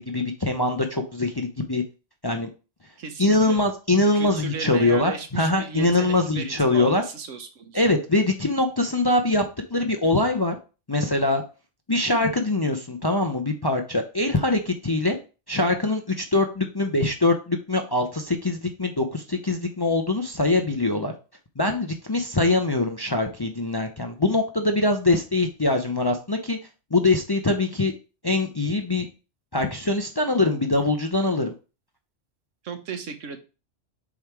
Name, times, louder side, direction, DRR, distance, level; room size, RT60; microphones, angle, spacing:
voice 1, 0.0-1.8 2.2-2.5 3.2-7.0 7.7-9.4 9.7-10.6 10.9-11.4 11.9-15.2 15.5-21.1 21.6-26.6 26.9-27.9 28.2-29.1 29.5-31.5, left 2 dB, 30° left, 4 dB, 0.5 m, -23 dB
voice 2, 3.0-3.6 4.1-7.8 32.6-33.4, right 5 dB, 85° right, 7 dB, 1.3 m, -35 dB
7.3 x 3.4 x 4.7 m, 0.33 s
omnidirectional pair, 1.3 m